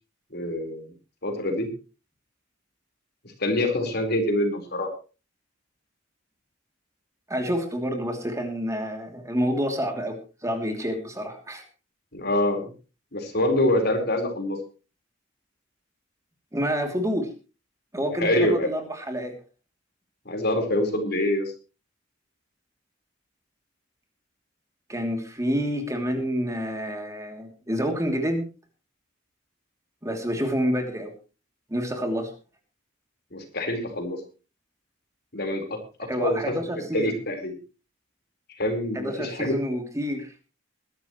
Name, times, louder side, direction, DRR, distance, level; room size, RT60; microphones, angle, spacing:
voice 1, 0.3-0.9 1.2-1.7 3.4-4.9 12.1-12.7 13.1-14.6 18.2-18.7 20.3-21.5 33.3-34.2 35.3-35.6 36.0-36.5 36.9-37.5 38.6-39.6, left 1 dB, 55° left, 4 dB, 4.4 m, -25 dB
voice 2, 7.3-11.6 16.5-17.3 17.9-19.4 24.9-28.5 30.0-31.1 31.7-32.3 36.1-37.1 38.9-40.3, equal, 15° right, 3 dB, 2.9 m, -28 dB
22.0 x 12.0 x 3.1 m, 0.34 s
head